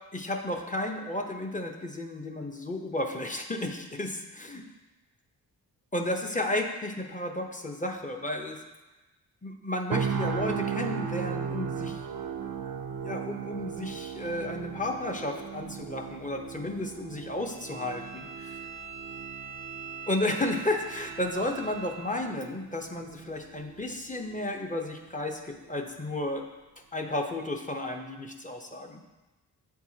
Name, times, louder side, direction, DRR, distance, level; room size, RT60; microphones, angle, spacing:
voice 1, 0.1-4.6 5.9-8.6 9.4-12.5 13.0-18.6 20.1-26.5 26.9-29.0, left 1 dB, 20° left, 3 dB, 0.8 m, -33 dB
sound 1, 9.9-23.9 24.2-24.5, right 7 dB, 60° right, 0.6 m, -37 dB
Bowed string instrument, 17.5-22.3, right 5 dB, 25° right, 0.7 m, -43 dB
8.4 x 4.7 x 2.8 m, 1.1 s
cardioid pair, 55°, 41 cm